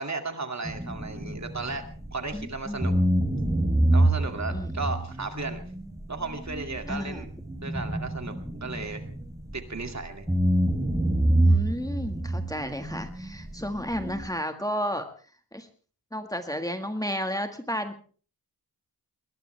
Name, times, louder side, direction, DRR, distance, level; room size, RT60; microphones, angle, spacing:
voice 1, 0.0-2.9 3.9-5.6 6.1-7.3 7.6-9.0 9.5-10.3, right 3 dB, 45° right, 6 dB, 2.4 m, -35 dB
sound 1, 0.6-2.4 2.8-9.9 10.3-14.3, right 1 dB, 10° right, 3.4 m, -26 dB
voice 2, 2.3-3.0 4.5-4.7 6.9-7.2 11.4-15.1 15.5-15.7 16.1-18.0, equal, 10° left, 7 dB, 1.7 m, -32 dB
21.5 x 20.0 x 3.4 m, 0.41 s
wide cardioid pair, 105°, 38 cm